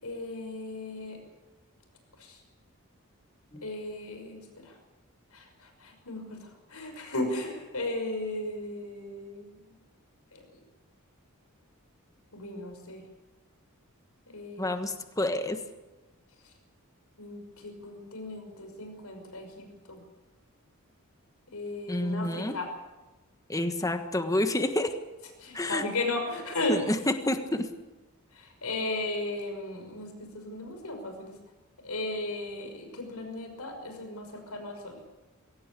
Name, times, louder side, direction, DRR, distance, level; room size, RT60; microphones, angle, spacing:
voice 1, 0.0-1.2 2.2-2.4 3.6-4.7 5.3-9.6 10.3-10.4 12.3-13.0 14.3-14.8 17.2-20.0 21.5-22.7 25.4-26.9 28.3-31.4 31.8-35.0, left 2 dB, 90° left, 5 dB, 5.9 m, -36 dB
voice 2, 14.6-15.6 21.9-22.6 23.5-24.9 25.5-25.8 26.7-27.7, left 1 dB, 15° left, 7 dB, 1.4 m, -29 dB
22.5 x 17.5 x 8.6 m, 1.1 s
head